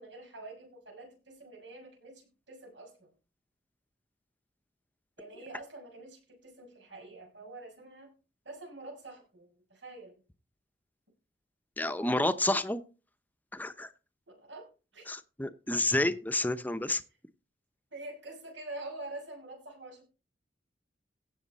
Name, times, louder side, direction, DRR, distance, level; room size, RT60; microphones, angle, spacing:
voice 1, 0.0-3.1 5.2-8.1 8.4-10.2 14.3-14.7 14.9-15.1 17.9-20.0, right 2 dB, 90° right, 6.4 m, -46 dB
voice 2, 11.8-12.8 13.5-13.9 15.1-17.0, left 2 dB, 10° left, 0.8 m, -29 dB
16.5 x 7.2 x 4.1 m
head